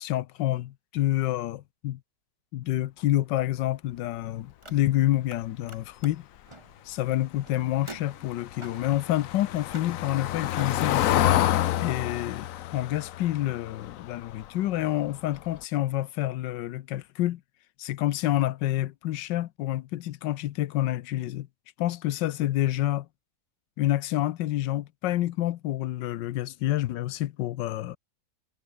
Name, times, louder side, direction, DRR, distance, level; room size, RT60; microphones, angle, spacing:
voice 1, 0.0-2.0 2.5-6.2 6.9-11.3 11.8-17.4 17.8-21.5 21.8-23.1 23.8-28.0, left 14 dB, 90° left, 1.4 m, -28 dB
Car, 4.5-5.4 5.6-10.7, right 2 dB, 15° right, 2.5 m, -49 dB
Car passing by / Engine, 7.8-14.8 15.1-15.4 15.6-15.7, left 13 dB, 65° left, 0.9 m, -28 dB
omnidirectional pair, 1.9 m